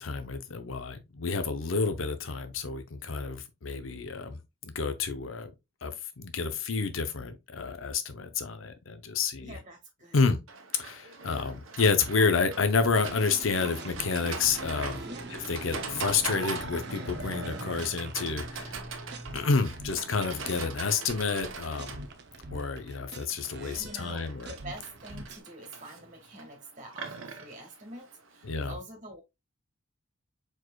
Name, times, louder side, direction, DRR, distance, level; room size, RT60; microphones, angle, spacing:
voice 1, 0.0-5.5 5.8-9.6 10.1-10.4 10.8-15.0 15.5-18.8 19.3-22.0 22.5-24.5 28.4-28.8, left 4 dB, 90° left, 0.7 m, -29 dB
voice 2, 9.4-10.2 15.0-15.3 23.7-29.2, right 1 dB, 40° right, 2.0 m, -46 dB
Livestock farm animals working animals, 10.5-28.5, right 4 dB, 90° right, 1.0 m, -42 dB
sound 1, 12.9-19.5 19.8-25.4, right 2 dB, 55° right, 0.7 m, -44 dB
sound 2, 14.4-19.7, right 1 dB, 5° left, 0.9 m, -46 dB
4.6 x 4.5 x 2.3 m
head